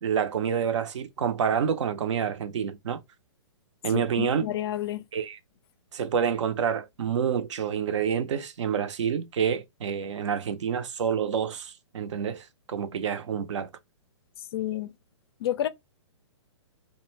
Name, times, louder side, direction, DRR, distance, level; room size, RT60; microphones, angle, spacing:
voice 1, 0.0-3.0 3.8-4.5 5.1-5.4 5.9-13.7, right 7 dB, 75° right, 0.5 m, -28 dB
voice 2, 3.9-5.0 14.5-14.9 15.4-15.7, left 12 dB, 55° left, 0.4 m, -30 dB
2.4 x 2.1 x 3.0 m
hypercardioid pair, 140°, 16 cm